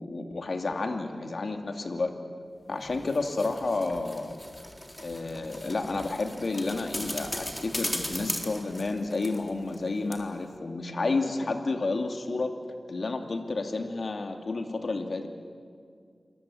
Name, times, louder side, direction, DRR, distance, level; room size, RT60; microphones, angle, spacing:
voice 1, 0.0-2.1 2.7-4.4 5.0-12.5 12.9-15.3, left 3 dB, 70° left, 5 dB, 2.6 m, -31 dB
sound 1, 2.8-9.8 10.1-10.2, left 1 dB, 15° left, 3.8 m, -38 dB
27.5 x 22.0 x 8.7 m, 2.2 s
cardioid pair, 55°, 0 cm